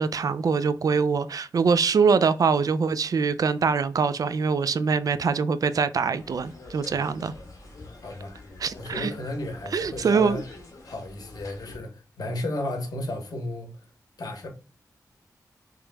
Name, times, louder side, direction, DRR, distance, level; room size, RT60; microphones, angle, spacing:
voice 1, 0.0-7.3 8.6-9.1 9.7-10.4, right 5 dB, 60° right, 0.4 m, -23 dB
sound 1, 6.2-11.8, left 2 dB, 55° left, 1.3 m, -44 dB
voice 2, 7.8-8.4 8.7-10.4 10.8-13.7 14.2-14.5, left 1 dB, 70° left, 1.1 m, -34 dB
5.1 x 3.1 x 2.2 m
wide cardioid pair, 90°, 7 cm